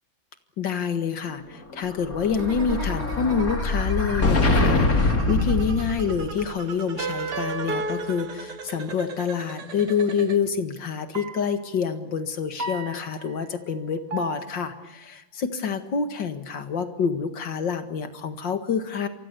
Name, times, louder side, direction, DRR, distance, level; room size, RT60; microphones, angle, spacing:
voice 1, 0.6-19.1, left 6 dB, 60° left, 9 dB, 2.5 m, -27 dB
Explosion, 1.8-6.4, left 2 dB, 45° left, 3.2 m, -24 dB
sound 1, 2.4-10.4, right 6 dB, 85° right, 2.8 m, -40 dB
sound 2, 7.0-9.1 11.1-11.7 12.6-13.6 14.1-14.9, right 3 dB, 35° right, 1.3 m, -33 dB
29.0 x 24.0 x 6.9 m, 0.95 s
omnidirectional pair, 2.2 m